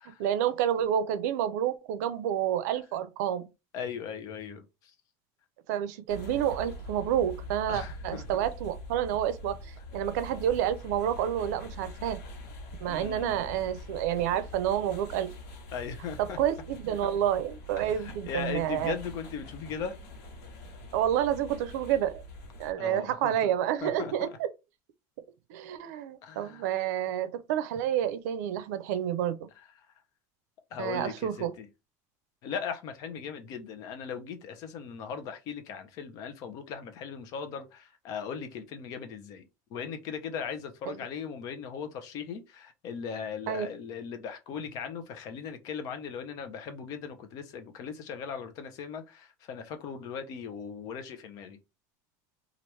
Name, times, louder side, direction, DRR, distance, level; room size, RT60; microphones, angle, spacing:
voice 1, 0.2-3.5 5.7-12.2 12.8-15.3 16.2-19.0 20.9-22.2 22.6-24.5 25.5-29.5 30.8-31.5 43.5-43.7, right 10 dB, 85° right, 0.5 m, -29 dB
voice 2, 3.7-4.9 7.7-8.2 12.9-13.5 15.7-16.4 17.8-19.9 22.8-23.5 23.8-24.3 26.2-26.7 30.7-31.7 32.4-51.6, left 6 dB, 45° left, 0.6 m, -38 dB
sound 1, 6.1-22.7, left 1 dB, 85° left, 1.2 m, -44 dB
3.0 x 2.4 x 3.2 m
cardioid pair, 160°, 8 cm